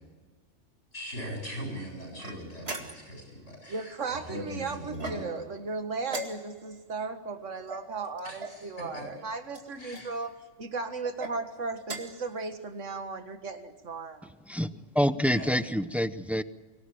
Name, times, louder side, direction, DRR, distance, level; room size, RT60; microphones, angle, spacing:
voice 1, 0.9-5.3 8.2-9.0 9.8-10.1 15.3-15.5, equal, 85° left, -1 dB, 8.2 m, -40 dB
sound 1, 2.2-3.2 4.9-5.5 6.1-6.8 7.7-8.6 9.5-10.1 11.0-11.4 11.8-12.3, right 2 dB, 55° right, 2.4 m, -40 dB
voice 2, 3.7-10.3 10.6-14.3, right 4 dB, 85° right, 7 dB, 2.0 m, -36 dB
voice 3, 14.5-16.4, equal, ahead, 13 dB, 0.4 m, -27 dB
24.0 x 18.0 x 8.8 m, 1.3 s
omnidirectional pair, 1.2 m